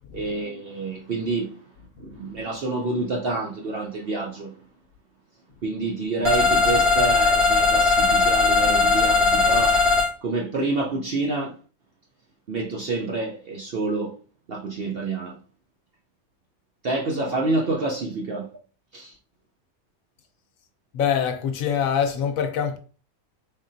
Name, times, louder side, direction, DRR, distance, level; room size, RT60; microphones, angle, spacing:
voice 1, 0.1-1.6 2.0-4.6 5.6-9.9 10.2-11.6 12.5-14.2 14.5-15.4 16.8-18.5 18.9-19.2, right 3 dB, 60° right, 0.6 m, -28 dB
sound 1, 6.2-10.1, left 3 dB, 75° right, 1.9 m, -19 dB
voice 2, 20.9-22.8, left 8 dB, 70° left, 1.0 m, -24 dB
4.0 x 3.6 x 2.5 m
omnidirectional pair, 1.5 m